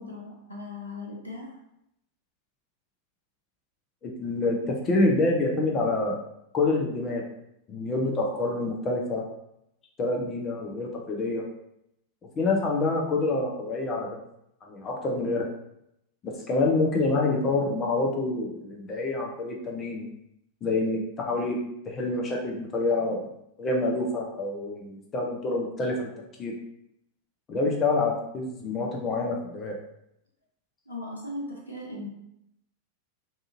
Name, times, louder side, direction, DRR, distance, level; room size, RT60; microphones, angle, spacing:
voice 1, 0.0-1.5 30.9-32.1, left 2 dB, 85° left, -3 dB, 0.6 m, -38 dB
voice 2, 4.0-6.2 6.5-7.2 7.7-9.2 10.0-11.4 12.4-14.2 14.7-15.5 16.2-20.1 20.6-21.6 21.8-23.3 23.6-26.1 26.4-26.5 27.5-29.8, left 2 dB, 25° left, 0 dB, 0.5 m, -27 dB
2.7 x 2.4 x 2.6 m, 0.79 s
figure-of-eight pair, 90°, 0 cm